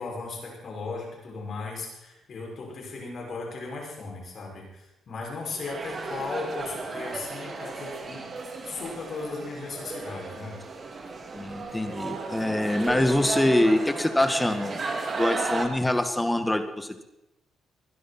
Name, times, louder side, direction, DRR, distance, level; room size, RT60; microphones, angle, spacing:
voice 1, 0.0-8.3 8.6-10.6, left 3 dB, 55° left, -1 dB, 6.2 m, -36 dB
sound 1, 5.4-15.7, right 3 dB, 40° right, 2.6 m, -35 dB
voice 2, 11.3-14.8 15.2-16.9, left 1 dB, 10° left, 8 dB, 1.6 m, -24 dB
21.0 x 12.0 x 4.4 m, 0.90 s
cardioid pair, 90°, 0 cm